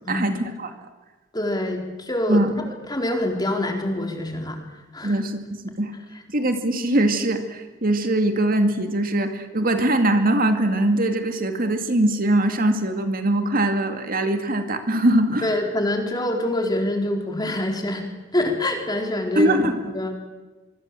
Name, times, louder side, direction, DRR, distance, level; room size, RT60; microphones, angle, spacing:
voice 1, 1.3-4.6 4.9-5.2 15.4-19.6 19.9-20.1, left 1 dB, 20° left, 3 dB, 4.3 m, -25 dB
voice 2, 5.0-5.9 6.3-15.5 19.4-19.9, right 1 dB, 45° right, 6 dB, 2.3 m, -22 dB
25.0 x 25.0 x 7.7 m, 1.2 s
head